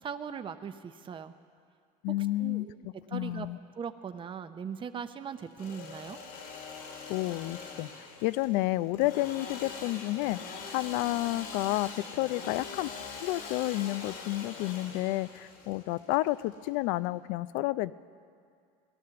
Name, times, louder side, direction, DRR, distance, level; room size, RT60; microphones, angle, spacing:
voice 1, 0.0-1.3 2.2-2.8 3.1-3.5 3.8-6.2, right 7 dB, 25° right, 10 dB, 0.6 m, -39 dB
voice 2, 2.0-2.7 3.1-3.6 7.1-7.9 8.2-17.9, left 18 dB, 75° left, 17 dB, 0.4 m, -30 dB
Engine / Sawing, 5.4-17.1, left 5 dB, 90° left, 2.7 m, -43 dB
17.5 x 11.5 x 6.9 m, 2.2 s
supercardioid pair, 105°, 19 cm